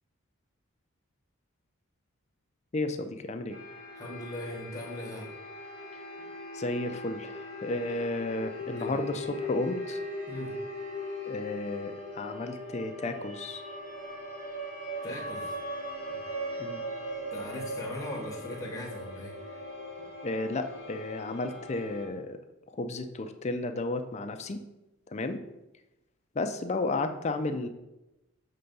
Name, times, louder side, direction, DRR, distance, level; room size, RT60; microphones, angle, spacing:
voice 1, 2.7-3.6 5.9-6.0 6.5-10.0 11.3-13.6 16.6-16.8 20.2-22.4 22.7-24.6 25.1-25.4 26.4-27.7, left 2 dB, 30° left, 8 dB, 0.4 m, -33 dB
sound 1, 3.5-22.1, equal, 35° right, 1.4 m, -39 dB
voice 2, 3.9-5.3 8.7-9.1 10.3-10.5 15.0-15.5 16.1-16.2 16.4-16.6 17.3-19.6, left 1 dB, 15° left, -2 dB, 1.3 m, -40 dB
6.7 x 3.4 x 5.3 m, 0.97 s
head